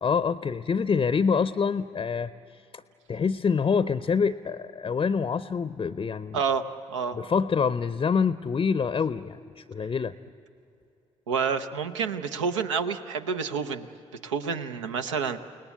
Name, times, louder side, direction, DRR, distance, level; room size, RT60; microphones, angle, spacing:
voice 1, 0.0-2.3 2.7-2.8 3.1-6.4 7.1-10.1, left 6 dB, 30° left, 14 dB, 0.6 m, -26 dB
voice 2, 6.3-7.2 11.3-13.9 14.2-15.4, right 6 dB, 80° right, 8 dB, 0.7 m, -29 dB
29.5 x 19.0 x 8.2 m, 2.7 s
figure-of-eight pair, 40°, 15 cm